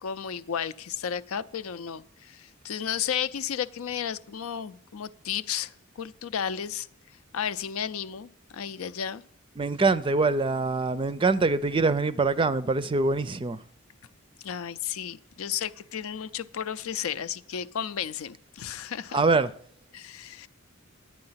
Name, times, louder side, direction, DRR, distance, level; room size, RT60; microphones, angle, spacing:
voice 1, 0.0-6.9 7.3-9.2 14.4-19.2 19.9-20.5, left 8 dB, 80° left, 0.5 m, -33 dB
voice 2, 9.6-13.6 19.1-19.5, right 3 dB, 25° right, 0.4 m, -24 dB
10.5 x 8.6 x 5.7 m
head